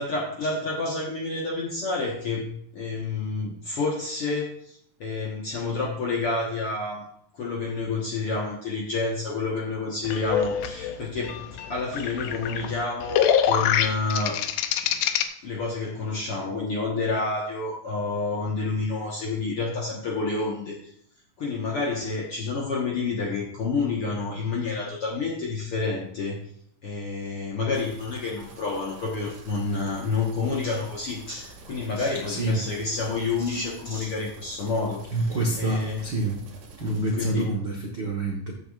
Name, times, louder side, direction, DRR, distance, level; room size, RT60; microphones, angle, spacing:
voice 1, 0.0-2.5 2.7-7.0 7.3-11.4 11.7-14.4 14.9-15.0 15.4-20.9 21.4-26.4 26.8-36.0 36.8-37.5, left 3 dB, 55° left, -3 dB, 1.9 m, -29 dB
sound 1, 10.0-15.2, left 9 dB, 80° left, 2.2 m, -25 dB
sound 2, 27.7-37.0, right 3 dB, 85° right, 3.9 m, -47 dB
voice 2, 32.3-32.6 35.1-36.4 36.8-38.5, right 2 dB, 50° right, -1 dB, 1.4 m, -27 dB
14.5 x 7.9 x 2.5 m, 0.67 s
omnidirectional pair, 3.8 m